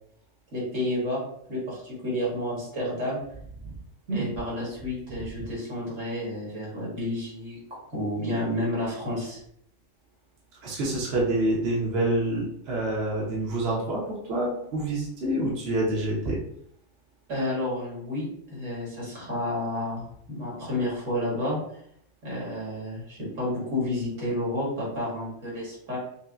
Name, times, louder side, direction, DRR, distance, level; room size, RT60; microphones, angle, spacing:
voice 1, 0.5-1.2 1.5-3.2 4.1-9.4 17.3-21.6 22.2-26.0, left 1 dB, 80° right, -6 dB, 2.1 m, -30 dB
voice 2, 10.6-16.4, right 1 dB, 60° right, -4 dB, 1.0 m, -27 dB
5.2 x 2.1 x 2.4 m, 0.70 s
omnidirectional pair, 1.3 m